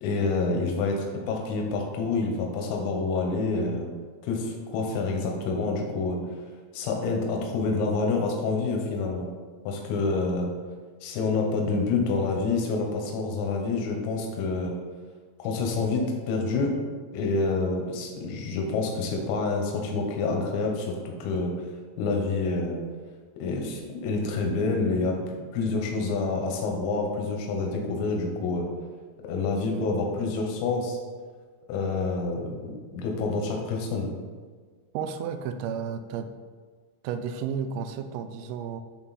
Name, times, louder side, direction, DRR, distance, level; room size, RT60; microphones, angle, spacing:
voice 1, 0.0-3.9 4.2-6.2 6.7-9.3 9.7-10.5 11.0-14.7 15.4-16.7 17.1-21.5 22.0-22.8 23.4-25.2 25.5-28.7 29.2-31.0 31.7-34.1, left 3 dB, 85° left, 1 dB, 3.7 m, -27 dB
voice 2, 34.9-36.3 37.0-38.8, right 7 dB, 85° right, 9 dB, 3.2 m, -32 dB
11.0 x 3.8 x 4.1 m, 1.5 s
omnidirectional pair, 5.8 m